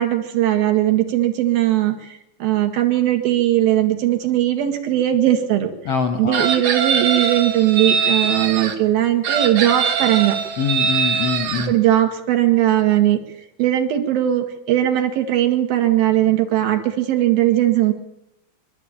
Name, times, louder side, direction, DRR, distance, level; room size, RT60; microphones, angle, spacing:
voice 1, 0.0-5.7 6.2-10.4 11.7-13.2 13.6-17.9, right 13 dB, 75° right, 4 dB, 3.7 m, -19 dB
voice 2, 5.8-6.5 10.6-11.7, left 5 dB, 65° left, 7 dB, 1.6 m, -23 dB
Chicken rooster, 6.3-8.8 9.2-11.7, right 6 dB, 55° right, 2.3 m, -22 dB
24.5 x 12.5 x 8.8 m, 0.89 s
omnidirectional pair, 4.3 m